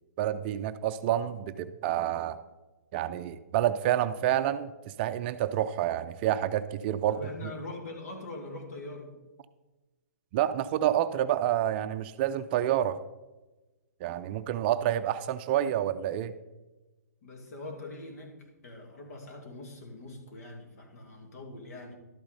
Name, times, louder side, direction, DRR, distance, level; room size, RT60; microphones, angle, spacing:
voice 1, 0.2-2.4 2.9-7.5 10.3-13.0 14.0-16.3, right 11 dB, 35° right, 11 dB, 0.5 m, -28 dB
voice 2, 7.1-9.1 15.5-15.9 17.2-21.9, left 2 dB, 65° left, 2 dB, 2.4 m, -43 dB
12.0 x 8.6 x 4.1 m, 1.1 s
hypercardioid pair, 135°, 9 cm